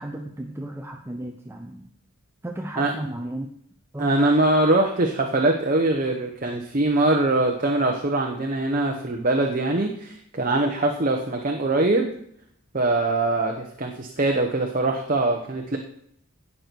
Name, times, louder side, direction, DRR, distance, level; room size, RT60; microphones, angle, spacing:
voice 1, 0.0-1.9 2.4-3.5 3.9-4.1, right 1 dB, 10° right, 3 dB, 0.6 m, -34 dB
voice 2, 4.0-12.1 12.7-15.8, right 2 dB, 35° right, 2 dB, 1.0 m, -22 dB
17.5 x 6.8 x 4.6 m, 0.69 s
head